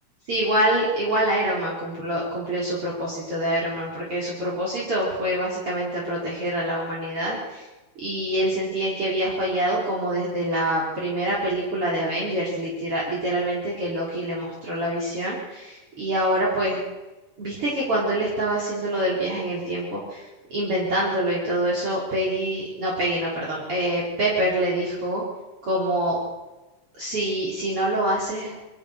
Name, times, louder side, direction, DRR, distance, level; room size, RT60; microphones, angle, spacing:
voice 1, 0.3-7.7 8.0-16.8 17.4-25.2 25.6-26.2 27.0-28.7, right 1 dB, 40° right, -6 dB, 5.3 m, -25 dB
28.5 x 23.5 x 6.7 m, 1.1 s
omnidirectional pair, 3.8 m